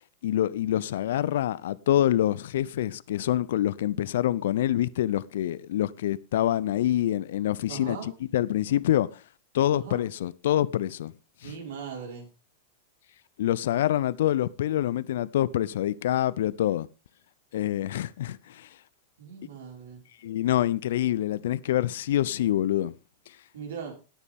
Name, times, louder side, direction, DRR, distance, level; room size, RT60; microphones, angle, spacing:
voice 1, 0.2-9.2 9.5-11.1 11.4-11.5 13.4-16.9 17.5-18.7 20.2-22.9, left 12 dB, 70° left, 0.6 m, -26 dB
voice 2, 7.7-8.1 9.7-10.0 11.4-12.3 19.2-20.0 23.5-23.9, right 6 dB, 75° right, 5.4 m, -39 dB
17.5 x 9.8 x 3.6 m
hypercardioid pair, 105°, 0 cm